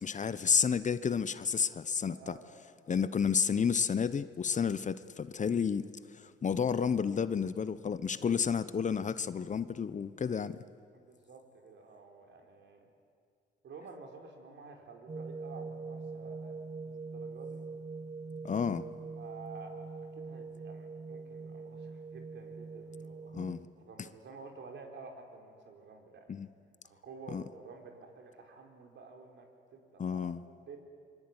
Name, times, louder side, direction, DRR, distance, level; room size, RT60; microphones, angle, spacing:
voice 1, 0.0-2.4 2.9-10.6 18.4-18.9 23.3-23.6 26.3-26.5 27.3-27.4 30.0-30.4, left 6 dB, 40° left, 14 dB, 0.9 m, -31 dB
voice 2, 2.1-2.4 10.9-12.9 13.6-17.6 19.2-26.3 26.8-30.8, right 4 dB, 65° right, 3 dB, 4.7 m, -51 dB
sound 1, 15.1-23.6, right 4 dB, 35° right, 1.5 m, -43 dB
25.0 x 24.0 x 9.8 m, 2.2 s
cardioid pair, 90°, 20 cm